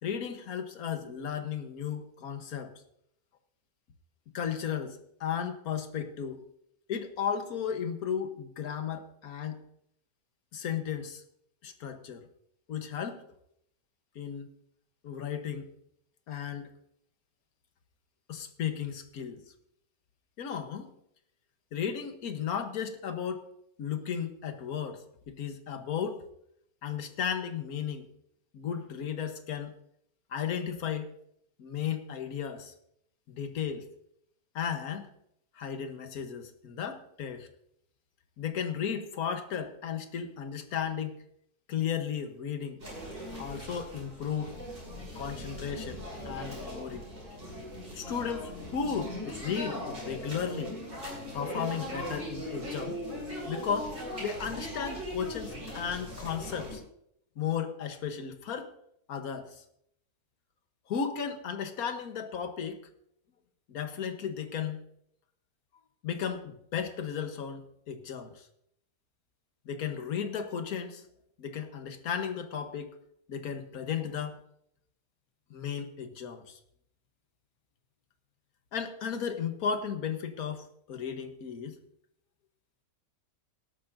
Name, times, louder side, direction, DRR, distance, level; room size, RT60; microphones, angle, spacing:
voice 1, 0.0-2.7 4.3-6.4 6.9-9.6 10.5-11.2 11.6-12.3 12.7-13.2 14.1-14.5 15.0-15.7 16.3-16.7 18.3-19.4 20.4-20.9 21.7-23.5 23.8-26.2 26.8-28.1 28.5-29.7 30.3-31.1 31.6-32.7 33.3-33.9 34.5-35.1 35.5-37.5 38.4-41.2 41.7-42.8 43.4-44.6 45.1-47.0 47.9-50.7 51.3-53.0 53.5-53.9 54.2-56.8 57.4-58.7 59.1-59.6 60.9-62.8 63.7-64.9 66.0-68.5 69.6-71.0 71.4-72.9 73.3-74.4 75.5-76.6 78.7-81.8, left 7 dB, 70° left, 7 dB, 1.6 m, -35 dB
sound 1, 42.8-56.8, equal, 55° right, 6.7 m, -39 dB
17.5 x 13.0 x 2.6 m, 0.72 s
omnidirectional pair, 1.6 m